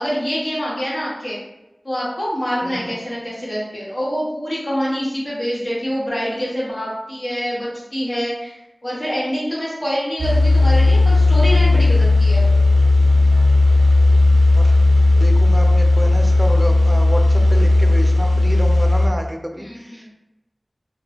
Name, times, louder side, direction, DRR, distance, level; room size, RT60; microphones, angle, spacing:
voice 1, 0.0-1.4 1.8-12.5 19.6-20.1, equal, 55° left, -7 dB, 1.5 m, -25 dB
voice 2, 2.6-3.0 14.6-14.8 15.2-20.1, equal, 15° right, 2 dB, 0.6 m, -29 dB
sound 1, 10.2-19.1, left 2 dB, 90° right, 0.4 m, -14 dB
3.4 x 2.3 x 3.3 m, 0.96 s
wide cardioid pair, 40°, 0 cm